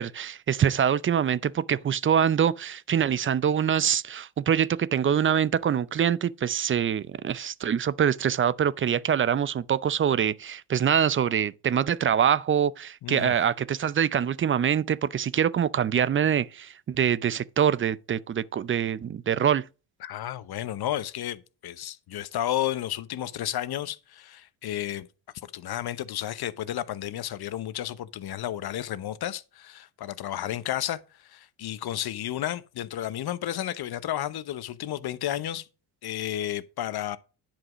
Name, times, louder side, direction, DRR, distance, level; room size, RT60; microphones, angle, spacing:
voice 1, 0.0-19.6, right 8 dB, 25° right, 0.5 m, -24 dB
voice 2, 13.0-13.3 20.0-25.1 25.5-35.7 36.0-37.2, left 12 dB, 50° left, 0.9 m, -32 dB
10.5 x 4.8 x 6.1 m
hypercardioid pair, 60°, 50 cm